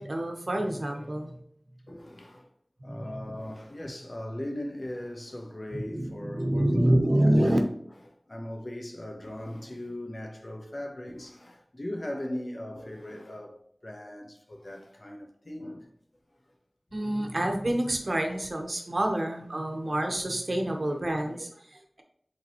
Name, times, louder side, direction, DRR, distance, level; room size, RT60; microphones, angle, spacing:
voice 1, 0.0-1.3 2.9-3.1 5.7-7.6 16.9-22.0, right 1 dB, 65° right, 1.2 m, -27 dB
voice 2, 0.7-1.1 1.9-2.5 2.8-7.0 7.2-7.6 8.1-15.9 16.3-16.4 20.6-21.0, left 1 dB, 55° left, 1.1 m, -39 dB
8.1 x 3.9 x 3.0 m
wide cardioid pair, 50°, 0 cm